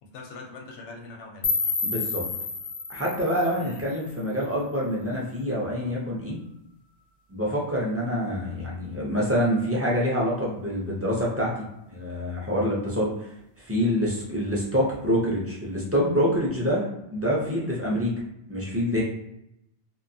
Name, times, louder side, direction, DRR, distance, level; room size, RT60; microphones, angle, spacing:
voice 1, 0.0-1.5 3.6-3.8, left 2 dB, 90° left, 1 dB, 0.9 m, -42 dB
sound 1, 1.4-4.4, left 4 dB, 50° left, 0.5 m, -30 dB
voice 2, 1.8-2.2 2.9-6.4 7.3-16.8 17.1-18.2 18.5-19.0, equal, 25° right, -5 dB, 0.3 m, -26 dB
2.6 x 2.2 x 2.6 m, 0.80 s
omnidirectional pair, 1.1 m